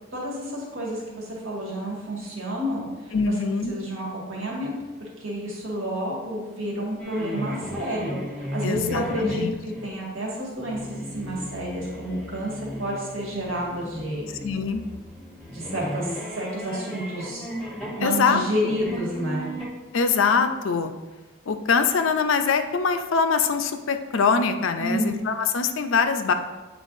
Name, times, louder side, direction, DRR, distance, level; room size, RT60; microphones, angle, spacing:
voice 1, 0.1-3.3 3.7-4.7 5.0-9.4 9.8-14.3 15.5-17.5 18.0-19.5 24.8-25.1, equal, 75° right, -4 dB, 1.8 m, -30 dB
voice 2, 3.1-3.8 8.6-9.6 14.4-14.8 18.0-18.8 19.9-20.9 21.5-26.3, left 5 dB, 75° left, 7 dB, 0.5 m, -23 dB
sound 1, 7.0-9.9 10.6-19.7, equal, ahead, 0.9 m, -36 dB
8.2 x 4.5 x 2.6 m, 1.2 s
head